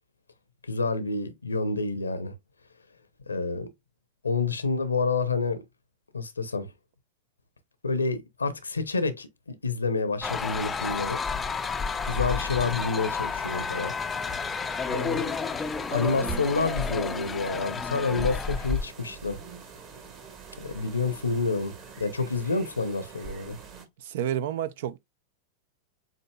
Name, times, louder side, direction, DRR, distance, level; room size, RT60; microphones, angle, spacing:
voice 1, 0.6-2.3 3.3-3.7 4.2-5.6 6.1-6.7 7.8-11.2 12.0-13.9 14.9-15.3 15.9-19.4 20.6-23.6, left 4 dB, 75° left, 0.8 m, -28 dB
sound 1, 10.2-18.9, left 5 dB, 15° left, 0.5 m, -31 dB
sound 2, 10.2-23.9, right 6 dB, 40° right, 1.6 m, -44 dB
voice 2, 24.0-25.0, right 10 dB, 55° right, 0.5 m, -30 dB
7.4 x 2.8 x 2.2 m
figure-of-eight pair, 90°, 0 cm